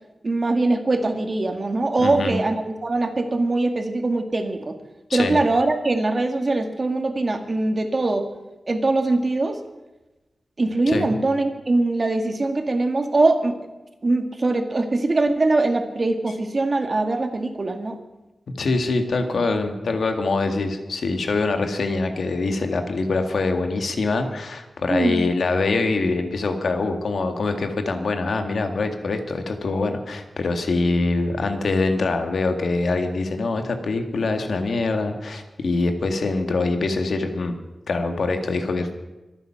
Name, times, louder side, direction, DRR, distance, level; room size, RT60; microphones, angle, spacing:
voice 1, 0.2-4.8 5.1-8.2 8.7-9.6 10.6-13.6 14.0-18.0 24.9-25.2, right 2 dB, 40° right, 6 dB, 2.1 m, -22 dB
voice 2, 2.0-2.4 5.1-5.4 10.9-11.1 18.6-37.5 37.9-38.9, left 3 dB, 80° left, 6 dB, 2.0 m, -24 dB
25.0 x 9.4 x 5.9 m, 1.1 s
wide cardioid pair, 95°, 0 cm